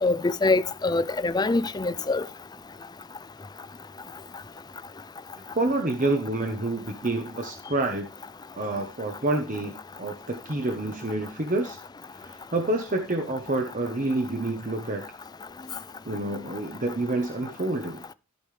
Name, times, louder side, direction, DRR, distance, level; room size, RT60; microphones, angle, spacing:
voice 1, 0.0-2.2, left 3 dB, 20° left, 0.4 m, -24 dB
voice 2, 5.5-8.1 8.6-11.8 12.1-15.0 16.1-18.0, right 2 dB, 40° right, 1.1 m, -28 dB
14.5 x 5.3 x 3.3 m
head